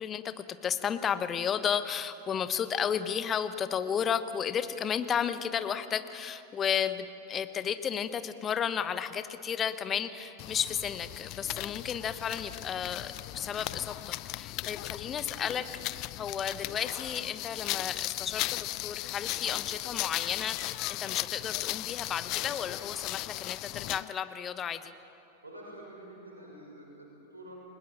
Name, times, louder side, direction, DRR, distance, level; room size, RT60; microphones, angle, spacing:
voice 1, 0.0-24.9, left 8 dB, 25° left, 12 dB, 1.1 m, -33 dB
sound 1, 10.4-24.1, left 19 dB, 40° left, 0.4 m, -37 dB
voice 2, 25.4-27.6, right 1 dB, 80° right, -2 dB, 6.1 m, -48 dB
29.5 x 20.0 x 7.5 m, 2.9 s
figure-of-eight pair, 90°, 0 cm